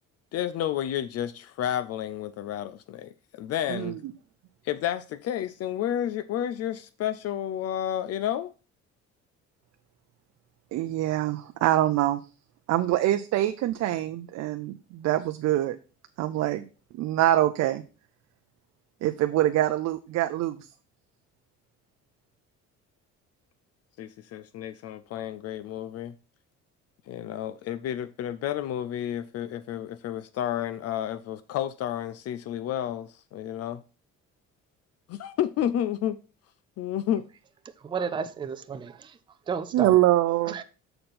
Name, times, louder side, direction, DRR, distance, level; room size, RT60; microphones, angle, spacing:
voice 1, 0.3-4.0 4.6-8.5 24.0-26.1 27.1-33.8 35.1-36.2 36.8-37.3, left 11 dB, 55° left, 0.4 m, -31 dB
voice 2, 10.7-12.2 12.7-15.8 16.2-16.6 16.9-17.8 19.0-20.7 39.7-40.6, right 14 dB, 65° right, 0.6 m, -24 dB
voice 3, 37.8-38.9 39.5-40.0 40.5-40.6, right 6 dB, 15° right, 0.4 m, -32 dB
6.7 x 4.3 x 5.7 m
cardioid pair, 145°, 30 cm